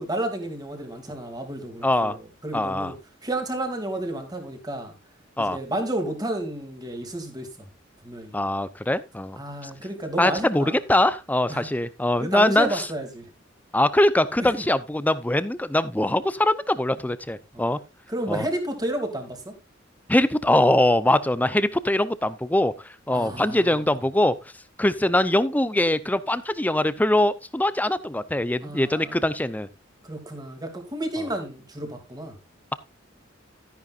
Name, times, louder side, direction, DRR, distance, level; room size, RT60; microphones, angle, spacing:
voice 1, 0.0-2.9 3.2-4.9 5.4-7.7 8.0-8.4 9.4-10.8 11.5-11.7 12.2-13.2 14.4-14.5 17.5-17.6 18.1-19.5 23.1-23.8 28.6-29.2 30.0-32.3, right 1 dB, 20° right, 2.7 m, -31 dB
voice 2, 1.8-2.2 2.5-2.9 5.4-5.6 8.3-9.4 10.2-12.9 13.7-17.8 18.3-18.5 20.1-22.7 23.1-24.4 24.8-29.7, left 1 dB, 10° left, 0.6 m, -22 dB
13.0 x 10.5 x 2.5 m
head